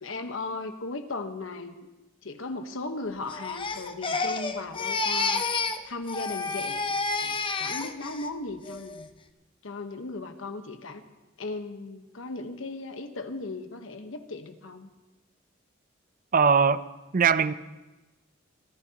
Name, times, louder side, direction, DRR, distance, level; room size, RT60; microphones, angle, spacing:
voice 1, 0.0-1.9 2.2-9.1 9.6-11.0 11.4-14.9, left 3 dB, 80° left, 1.2 m, -37 dB
Crying sobbing, 3.3-5.8 6.1-8.3 8.7-9.1, left 4 dB, 25° left, 0.7 m, -30 dB
voice 2, 16.3-16.8 17.1-17.5, right 6 dB, 45° right, 0.5 m, -20 dB
25.0 x 14.5 x 2.9 m
head